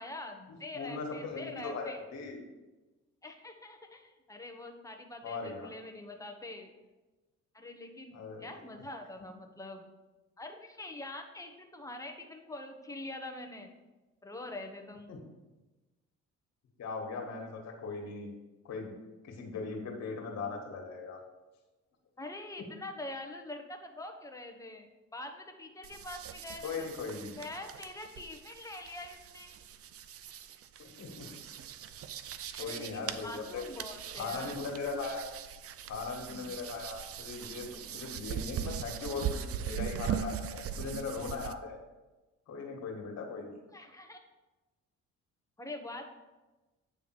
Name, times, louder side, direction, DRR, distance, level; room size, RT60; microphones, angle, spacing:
voice 1, 0.0-2.0 3.2-6.7 7.5-9.9 10.4-13.7 14.2-15.1 22.2-26.9 27.4-29.5 32.6-34.6 36.3-36.5 43.7-44.2 45.6-46.1, left 2 dB, 10° left, 4 dB, 1.1 m, -44 dB
voice 2, 0.7-2.4 5.2-5.7 8.1-8.5 15.1-15.2 16.8-18.3 18.6-18.9 19.2-21.2 26.6-27.4 30.8-31.3 32.5-33.6 34.1-35.2 35.8-41.8 42.5-43.5, left 4 dB, 60° left, 1 dB, 1.9 m, -39 dB
sound 1, 25.8-41.5, right 8 dB, 55° right, 0.5 m, -40 dB
8.9 x 3.5 x 6.1 m, 1.1 s
cardioid pair, 85°, 29 cm